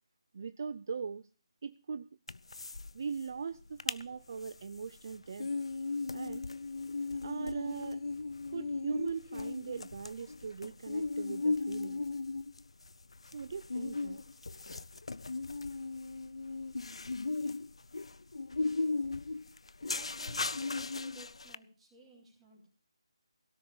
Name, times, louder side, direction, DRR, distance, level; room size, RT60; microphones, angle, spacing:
voice 1, 0.3-1.3 1.6-2.1 2.9-5.5 6.1-6.4 7.2-8.0 8.5-12.0 13.3-14.2, right 5 dB, 40° right, 12 dB, 0.6 m, -40 dB
sound 1, 2.3-2.9 3.2-3.3 3.6-4.0 4.4-21.6, left 3 dB, 80° left, 0.7 m, -37 dB
voice 2, 19.8-22.7, right 3 dB, 5° right, -5 dB, 3.9 m, -57 dB
17.5 x 6.7 x 8.7 m, 0.36 s
figure-of-eight pair, 170°, 3 cm